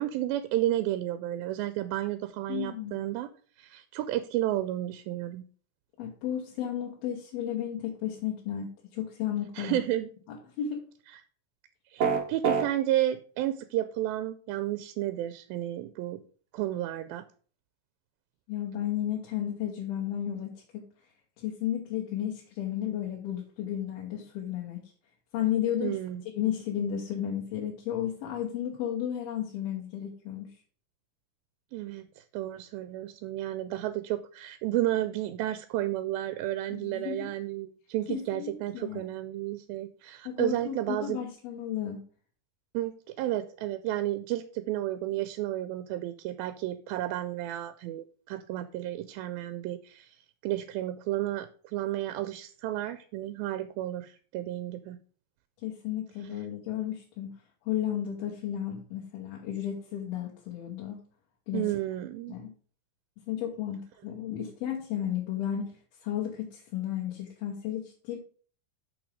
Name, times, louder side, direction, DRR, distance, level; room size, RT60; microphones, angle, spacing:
voice 1, 0.0-3.3 3.6-5.4 9.6-10.1 11.9-16.2 16.5-17.3 25.8-26.2 31.7-41.2 42.7-50.2 50.4-55.0 61.5-62.4, right 14 dB, 85° right, 11 dB, 2.2 m, -32 dB
voice 2, 2.5-3.0 6.0-9.8 10.3-10.8 18.5-20.8 21.4-24.8 25.3-26.0 26.3-30.5 36.7-37.3 38.1-39.0 40.3-42.0 55.6-57.3 57.7-61.0 61.5-61.7 62.3-62.5 63.3-65.8 66.0-68.2, left 10 dB, 90° left, -1 dB, 3.1 m, -33 dB
sound 1, 12.0-12.7, right 6 dB, 65° right, 1.3 m, -24 dB
6.2 x 6.1 x 5.0 m, 0.43 s
omnidirectional pair, 4.2 m